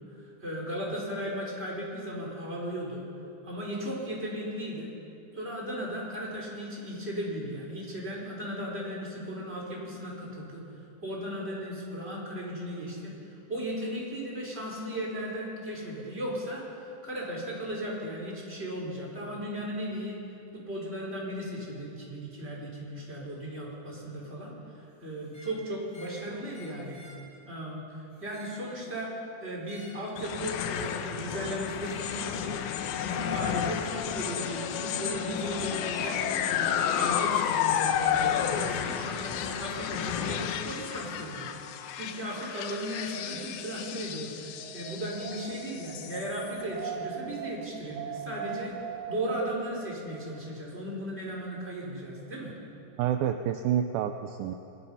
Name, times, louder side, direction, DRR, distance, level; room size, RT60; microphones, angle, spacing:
voice 1, 0.4-3.0 3.4-4.9 5.3-10.6 11.0-13.1 13.5-16.6 17.0-20.2 20.5-24.5 25.0-27.0 27.5-27.8 28.2-32.6 33.0-41.5 41.9-48.7 49.1-52.5, equal, 15° right, -3 dB, 5.1 m, -36 dB
sound 1, 25.2-25.6 25.9-26.2 26.5-27.2 28.1-28.6 29.6-30.0 30.7-31.1 31.8-32.1 33.3-33.5, left 1 dB, 10° left, 6.4 m, -52 dB
sound 2, 30.2-46.6, left 9 dB, 85° left, 3.3 m, -31 dB
Wind, 42.0-49.9, right 8 dB, 60° right, 1.5 m, -41 dB
voice 2, 53.0-54.5, right 10 dB, 80° right, 7 dB, 2.2 m, -28 dB
29.0 x 21.5 x 5.7 m, 2.8 s
omnidirectional pair, 4.9 m